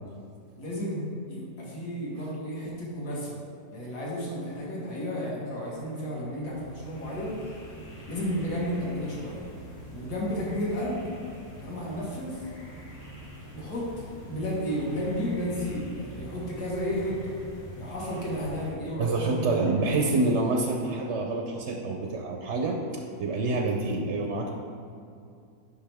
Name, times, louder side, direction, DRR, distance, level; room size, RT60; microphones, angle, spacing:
voice 1, 0.6-3.4 3.7-7.4 8.1-9.4 9.9-11.0 11.6-12.4 13.5-17.3 17.8-20.1, equal, 60° left, -5 dB, 2.3 m, -32 dB
sound 1, 6.1-18.7, right 1 dB, 90° left, 2.6 m, -45 dB
voice 2, 19.0-24.5, right 2 dB, 60° right, 1 dB, 0.7 m, -27 dB
9.7 x 6.1 x 3.5 m, 2.4 s
omnidirectional pair, 1.9 m